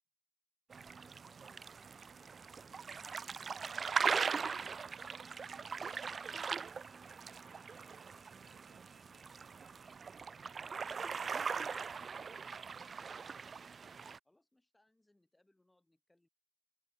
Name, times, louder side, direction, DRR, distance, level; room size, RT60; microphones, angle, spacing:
sound 1, 0.7-14.2, right 5 dB, 30° right, 0.3 m, -40 dB
voice 1, 1.0-6.1 14.2-16.3, left 1 dB, 10° left, 7.9 m, -74 dB
sound 2, 4.3-12.6, right 2 dB, 10° right, 7.5 m, -70 dB
voice 2, 7.8-9.9, right 13 dB, 55° right, 7.2 m, -72 dB
supercardioid pair, 100°, 0 cm